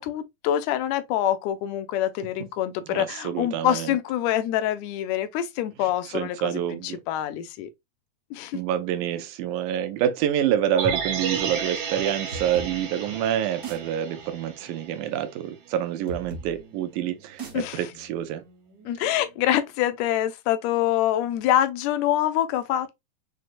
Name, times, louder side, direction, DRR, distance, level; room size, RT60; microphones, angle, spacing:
voice 1, 0.0-7.7 8.3-8.6 17.5-17.9 18.9-22.9, left 12 dB, 80° left, 1.7 m, -25 dB
voice 2, 3.2-3.9 6.1-7.0 8.5-18.4, right 10 dB, 90° right, 2.1 m, -27 dB
sound 1, 10.8-15.0 15.3-15.4, right 6 dB, 65° right, 1.6 m, -32 dB
sound 2, 12.3-19.7, right 3 dB, 50° right, 1.1 m, -43 dB
6.1 x 2.1 x 2.5 m
omnidirectional pair, 3.4 m